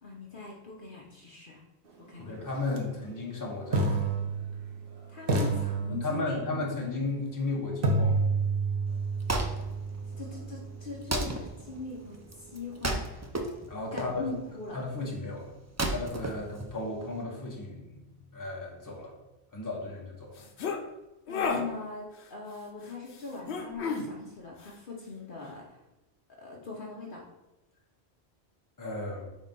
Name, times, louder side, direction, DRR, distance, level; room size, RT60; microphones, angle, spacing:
voice 1, 0.0-1.6 2.1-2.4 5.1-6.4 10.2-13.2 13.9-14.8 21.3-25.8 26.4-27.2, left 4 dB, 55° left, -2 dB, 1.0 m, -41 dB
voice 2, 2.2-3.9 5.9-8.2 13.7-14.3 14.7-15.5 15.9-19.1 19.5-20.3 28.8-29.3, left 2 dB, 20° left, -3 dB, 1.1 m, -34 dB
sound 1, 2.6-2.8 3.7-4.9 5.3-6.5 7.8-11.8, right 3 dB, 55° right, 1.1 m, -30 dB
Wood, 8.9-17.2, right 2 dB, 25° right, 0.4 m, -35 dB
sound 2, 20.4-20.8 21.3-21.6 23.5-24.1, left 5 dB, 80° left, 1.0 m, -30 dB
4.2 x 4.2 x 5.3 m, 0.98 s
omnidirectional pair, 1.1 m